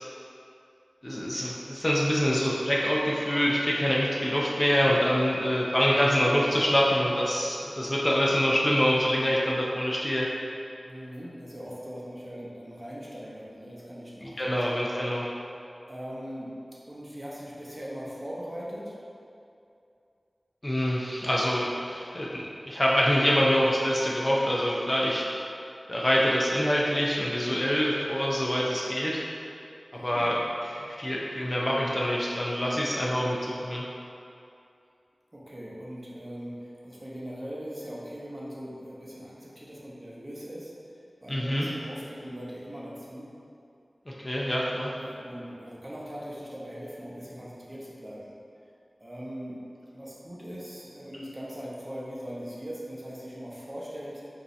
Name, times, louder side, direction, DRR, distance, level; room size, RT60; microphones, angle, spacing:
voice 1, 1.0-10.3 14.2-15.3 20.6-25.3 25.9-29.2 30.0-33.8 41.3-41.7 44.1-44.9, equal, 30° left, -4 dB, 0.5 m, -25 dB
voice 2, 10.8-14.8 15.9-19.0 29.9-30.3 35.3-40.7 41.2-43.3 44.8-48.3 49.0-49.6 49.9-54.2, equal, 30° right, -6 dB, 0.8 m, -40 dB
5.0 x 2.7 x 3.2 m, 2.6 s
wide cardioid pair, 60°, 0 cm